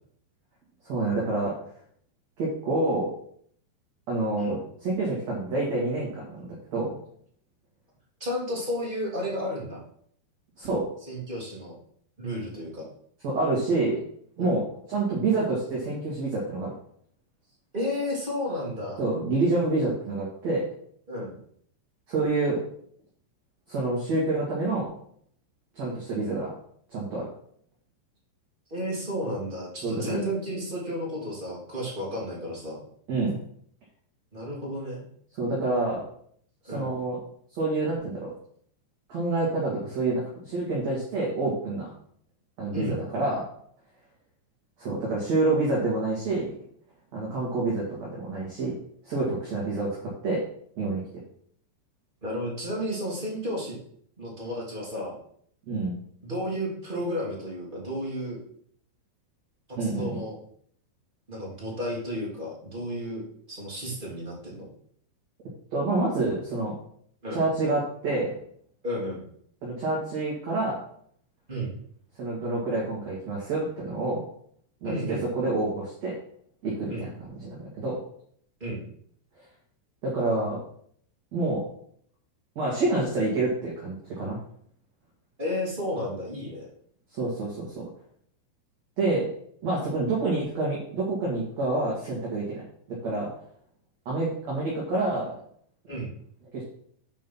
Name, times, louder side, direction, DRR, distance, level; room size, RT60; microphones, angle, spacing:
voice 1, 0.8-1.5 2.4-3.1 4.1-6.9 10.6-10.8 13.2-14.0 14.4-16.7 19.0-20.7 22.1-22.6 23.7-24.9 25.8-26.5 26.9-27.3 29.8-30.2 33.1-33.4 35.3-36.0 36.6-37.2 37.6-38.3 39.1-41.9 42.6-43.4 44.8-46.5 47.1-48.7 49.0-50.4 50.8-51.0 55.7-55.9 59.8-60.2 65.7-66.7 67.3-68.3 69.6-70.8 72.2-74.2 74.8-76.1 76.6-77.1 77.4-78.0 80.0-80.6 81.3-81.6 82.6-84.4 87.1-87.8 89.0-89.3 89.6-92.6 92.9-93.3 94.1-95.3 96.5-96.6, right 2 dB, 45° right, -5 dB, 2.6 m, -27 dB
voice 2, 8.2-9.8 11.1-11.7 12.2-12.9 14.4-14.5 17.7-19.0 21.1-21.3 28.7-32.8 34.3-35.0 36.6-36.9 42.7-43.0 52.2-53.8 54.2-55.1 56.2-58.4 59.8-60.3 61.3-63.2 63.5-64.7 67.2-67.4 68.8-69.2 71.5-71.8 74.8-75.2 76.9-77.1 78.6-78.8 85.4-86.7 95.9-96.1, equal, 15° right, -5 dB, 1.8 m, -32 dB
8.8 x 5.2 x 5.5 m, 0.63 s
omnidirectional pair, 5.5 m